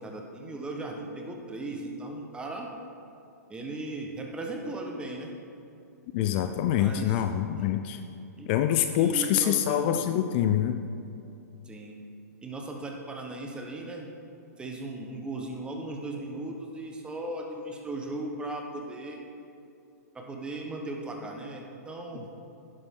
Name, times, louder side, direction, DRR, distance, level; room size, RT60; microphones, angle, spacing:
voice 1, 0.0-2.7 3.5-5.3 6.7-7.2 7.6-7.7 8.4-10.2 11.6-12.0 12.4-14.1 14.6-19.2 20.1-22.3, right 2 dB, 10° right, 1 dB, 1.2 m, -37 dB
voice 2, 6.1-8.0 8.5-10.8, left 10 dB, 40° left, 8 dB, 0.5 m, -25 dB
11.0 x 10.5 x 3.8 m, 2.7 s
hypercardioid pair, 140°, 9 cm